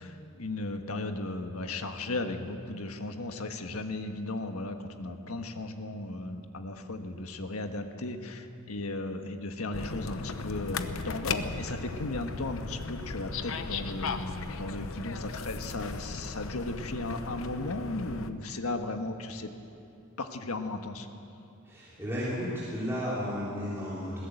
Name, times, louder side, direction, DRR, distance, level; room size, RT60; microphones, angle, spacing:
voice 1, 0.0-19.5 20.2-21.1, left 2 dB, 85° left, 6 dB, 1.4 m, -36 dB
sound 1, 9.7-18.3, left 4 dB, 65° left, 0.9 m, -37 dB
voice 2, 21.7-24.2, equal, 10° right, -9 dB, 3.7 m, -33 dB
21.0 x 16.5 x 8.0 m, 2.8 s
head